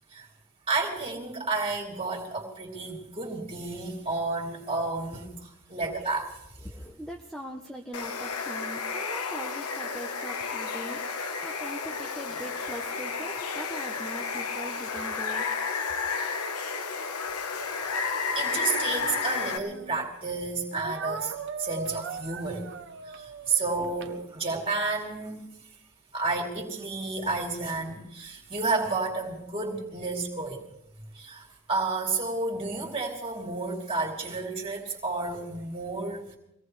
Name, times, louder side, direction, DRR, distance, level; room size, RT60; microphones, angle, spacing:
voice 1, 0.7-6.4 18.3-21.3 21.6-22.7 23.0-25.4 26.1-30.7 31.1-36.4, right 3 dB, 25° right, -1 dB, 3.1 m, -31 dB
voice 2, 6.6-15.5, equal, ahead, 1 dB, 0.8 m, -41 dB
Water, 7.9-19.6, left 5 dB, 90° left, 1.2 m, -32 dB
Speech, 18.5-20.1 20.7-24.7, right 4 dB, 50° right, 0.8 m, -40 dB
24.5 x 18.0 x 3.3 m, 0.81 s
head